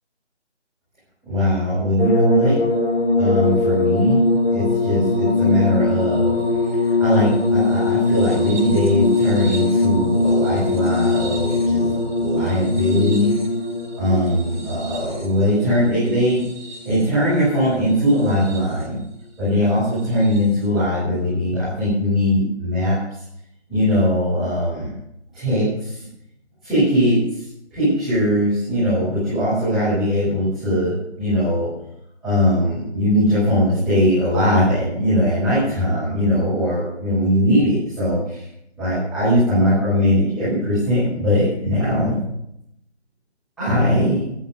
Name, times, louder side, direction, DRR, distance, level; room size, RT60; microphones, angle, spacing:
voice 1, 1.2-2.6 3.2-6.4 6.8-13.3 14.0-16.4 16.8-19.0 19.4-22.9 23.7-25.0 25.3-26.0 26.6-31.7 32.2-38.4 38.8-42.1 43.6-44.2, equal, ahead, -18 dB, 5.9 m, -20 dB
sound 1, 2.0-17.2 18.1-18.8 20.2-20.4, left 3 dB, 55° left, 6.8 m, -21 dB
14.5 x 12.0 x 5.4 m, 0.77 s
figure-of-eight pair, 160°, 34 cm